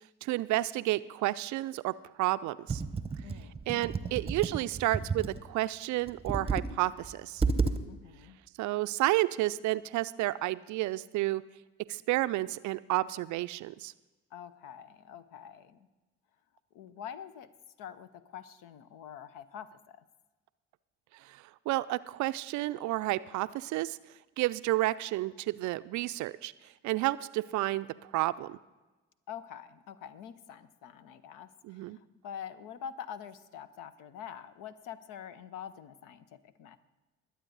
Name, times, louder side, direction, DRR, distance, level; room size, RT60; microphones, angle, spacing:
voice 1, 0.2-1.9 2.2-2.8 3.7-7.4 8.6-11.4 11.9-13.9 21.3-21.4 21.7-24.0 24.4-26.5 26.8-27.9 28.1-28.6 31.7-32.0, right 17 dB, 50° right, 15 dB, 0.5 m, -31 dB
Computer keyboard, 2.7-5.4 6.1-6.7 7.0-7.1 7.4-7.8, right 4 dB, 15° right, 0.8 m, -31 dB
voice 2, 3.2-4.2 4.5-4.7 7.9-8.4 14.3-15.9 16.7-17.5 17.8-20.0 29.3-36.8, left 8 dB, 60° left, 14 dB, 0.8 m, -46 dB
21.0 x 8.2 x 4.0 m, 1.1 s
figure-of-eight pair, 50°, 37 cm